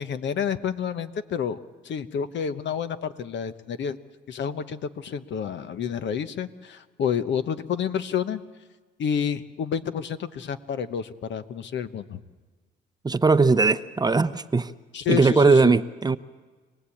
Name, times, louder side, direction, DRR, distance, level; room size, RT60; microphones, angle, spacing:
voice 1, 0.0-1.6 1.8-4.0 4.3-8.4 9.0-12.2 14.9-15.7, left 7 dB, 65° left, 11 dB, 1.0 m, -29 dB
voice 2, 13.0-14.7 15.1-16.2, right 4 dB, 20° right, 12 dB, 0.7 m, -19 dB
26.0 x 18.5 x 8.6 m, 1.4 s
cardioid pair, 90°, 20 cm